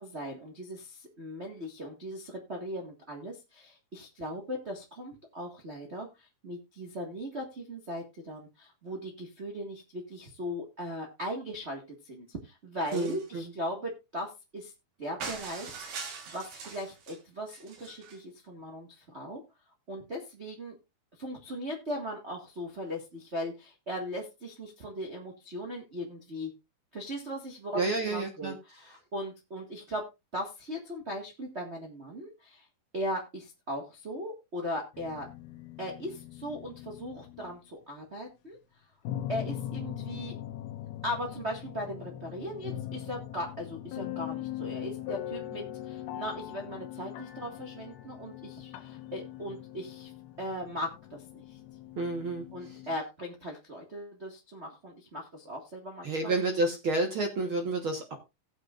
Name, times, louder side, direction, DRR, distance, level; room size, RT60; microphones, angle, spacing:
voice 1, 0.0-14.7 15.0-19.4 19.9-20.8 21.2-26.5 26.9-30.1 30.3-32.6 32.9-35.3 35.8-38.6 39.3-40.3 41.0-50.1 50.4-51.6 52.5-56.3, equal, 40° right, -1 dB, 0.9 m, -38 dB
voice 2, 12.9-13.5 27.7-28.5 52.0-52.8 56.0-58.1, right 2 dB, 65° right, 3 dB, 1.3 m, -30 dB
sound 1, 12.9-13.3 15.2-17.2 17.5-18.2, right 5 dB, 85° right, 4.2 m, -42 dB
sound 2, 34.9-37.6 39.0-53.0, left 12 dB, 90° left, 2.8 m, -41 dB
18.0 x 7.8 x 2.5 m, 0.24 s
omnidirectional pair, 4.3 m